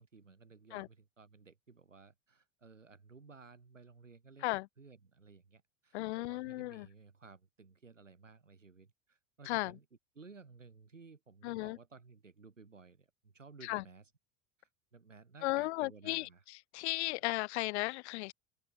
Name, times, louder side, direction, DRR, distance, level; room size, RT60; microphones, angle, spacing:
voice 1, 0.0-4.5 4.8-9.9 10.1-14.1 14.6-16.4, right 4 dB, 90° right, 5.6 m, -57 dB
voice 2, 5.9-6.9 9.5-9.7 11.4-11.8 13.6-13.8 15.4-16.3 16.7-18.3, left 21 dB, 65° left, 1.7 m, -35 dB
figure-of-eight pair, 75°, 37 cm